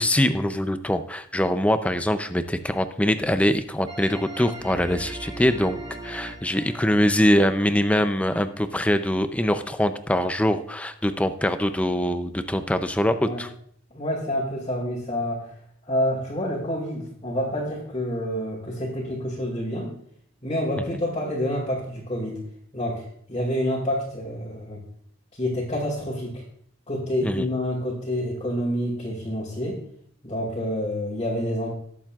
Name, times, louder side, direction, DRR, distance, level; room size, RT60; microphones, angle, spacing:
voice 1, 0.0-13.5 27.2-27.5, left 1 dB, 5° left, 9 dB, 0.5 m, -23 dB
sound 1, 3.9-8.7, right 2 dB, 20° right, 1.4 m, -40 dB
voice 2, 13.9-15.5 15.9-19.9 20.4-22.4 22.7-24.8 25.4-26.4 26.9-29.8 30.2-31.7, equal, 30° left, -5 dB, 2.2 m, -28 dB
19.5 x 7.3 x 2.4 m, 0.63 s
head